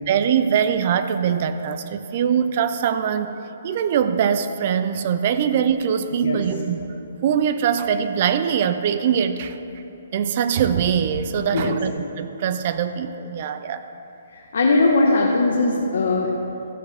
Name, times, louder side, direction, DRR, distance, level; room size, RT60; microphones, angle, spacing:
voice 1, 0.1-3.3 3.6-6.9 7.2-9.6 10.1-13.9, right 8 dB, 35° right, 10 dB, 0.4 m, -22 dB
voice 2, 14.3-16.3, left 3 dB, 70° left, -1 dB, 1.1 m, -20 dB
13.5 x 8.0 x 3.5 m, 2.9 s
hypercardioid pair, 170°, 0 cm